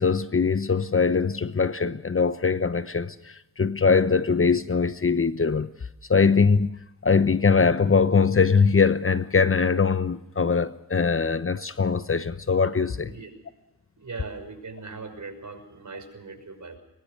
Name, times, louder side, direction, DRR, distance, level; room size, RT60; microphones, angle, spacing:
voice 1, 0.0-5.7 6.1-13.1, left 5 dB, 35° left, 1.1 m, -22 dB
voice 2, 14.0-16.8, right 4 dB, 50° right, 6.0 m, -39 dB
22.5 x 22.0 x 6.2 m
cardioid pair, 55°, 37 cm